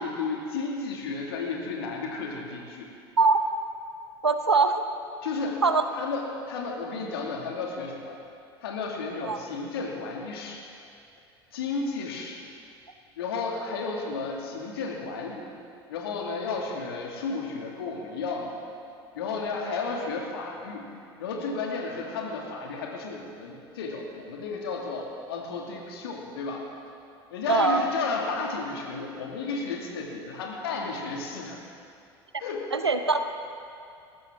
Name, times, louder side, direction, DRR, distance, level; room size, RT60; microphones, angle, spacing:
voice 1, 0.0-2.9 5.2-5.6 5.9-8.2 8.6-10.6 11.5-12.4 13.2-15.5 15.9-18.6 19.2-20.9 21.2-26.7 27.3-31.6 32.4-32.7, left 4 dB, 70° left, 0 dB, 2.2 m, -33 dB
voice 2, 4.2-4.9 5.6-5.8 9.2-9.4 27.5-27.9 32.7-33.2, right 4 dB, 85° right, 8 dB, 0.7 m, -22 dB
19.5 x 14.5 x 3.7 m, 2.5 s
figure-of-eight pair, 65°, 13 cm